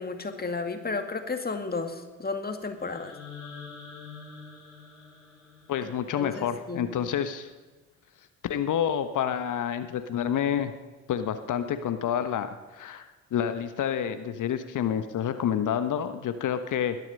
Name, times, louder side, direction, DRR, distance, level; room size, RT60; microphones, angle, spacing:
voice 1, 0.0-3.1 5.8-6.9, left 4 dB, 25° left, 6 dB, 2.1 m, -33 dB
sound 1, 2.8-6.8, left 5 dB, 80° left, 3.6 m, -46 dB
voice 2, 5.7-7.5 8.5-10.7 11.1-12.5 12.7-13.0 13.3-17.0, left 9 dB, 50° left, 10 dB, 1.2 m, -28 dB
21.5 x 11.0 x 5.4 m, 1.2 s
figure-of-eight pair, 40°, 38 cm